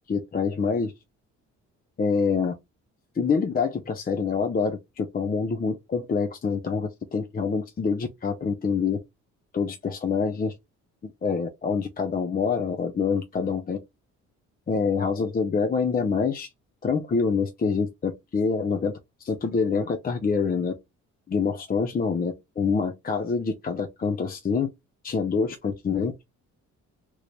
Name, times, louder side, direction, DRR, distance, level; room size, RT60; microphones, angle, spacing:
voice 1, 0.1-0.9 2.0-2.5 3.2-9.0 9.5-10.5 11.0-13.8 14.7-16.5 16.8-20.7 21.3-24.7 25.0-26.1, left 5 dB, 30° left, 0.6 m, -26 dB
3.1 x 2.5 x 3.1 m
cardioid pair, 90°, 30 cm